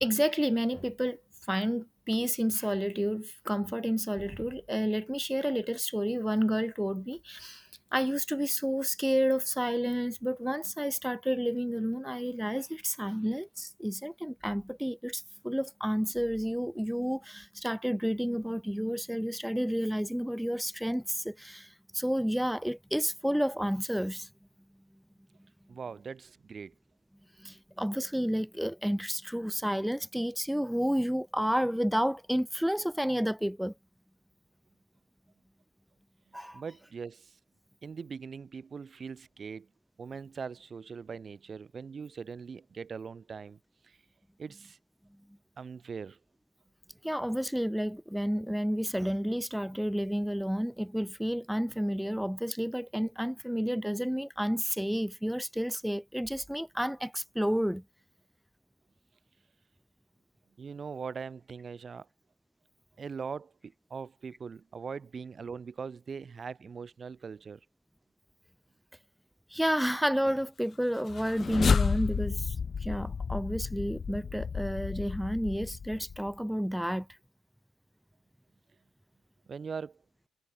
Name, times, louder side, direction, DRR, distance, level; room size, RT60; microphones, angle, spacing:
voice 1, 0.0-1.2 1.5-7.6 7.9-21.7 21.9-24.3 27.4-33.7 36.3-36.6 47.0-57.8 69.5-72.6 72.8-77.1, equal, ahead, 2.0 m, -30 dB
voice 2, 25.7-26.7 36.5-37.4 37.8-39.7 40.0-43.6 43.8-44.0 44.4-44.8 45.6-46.2 60.6-62.1 63.0-67.6 79.5-80.0, right 5 dB, 40° right, 4.9 m, -41 dB
sound 1, 71.0-76.3, left 6 dB, 40° left, 0.5 m, -31 dB
cardioid pair, 90°, 0 cm